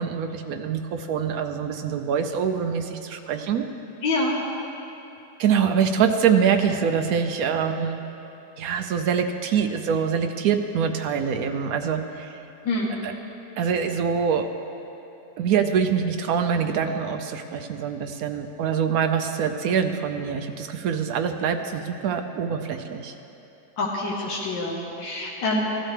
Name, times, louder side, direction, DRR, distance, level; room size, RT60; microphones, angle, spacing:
voice 1, 0.0-3.7 5.4-8.0 8.6-12.4 13.0-13.1 13.6-14.5 15.4-23.1, right 7 dB, 70° right, 7 dB, 0.9 m, -24 dB
voice 2, 4.0-4.4 12.6-13.0 23.8-25.6, left 2 dB, 85° left, -4 dB, 1.9 m, -26 dB
16.0 x 12.0 x 3.3 m, 3.0 s
omnidirectional pair, 2.0 m